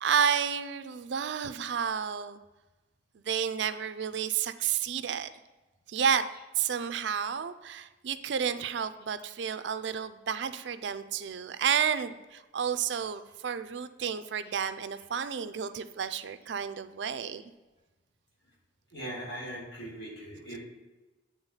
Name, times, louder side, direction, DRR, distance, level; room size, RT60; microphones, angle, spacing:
voice 1, 0.0-2.4 3.1-5.3 5.9-6.3 6.6-17.4, right 7 dB, 70° right, 11 dB, 0.4 m, -31 dB
voice 2, 18.9-20.6, right 1 dB, 60° left, -5 dB, 2.7 m, -40 dB
8.9 x 3.5 x 5.5 m, 1.1 s
head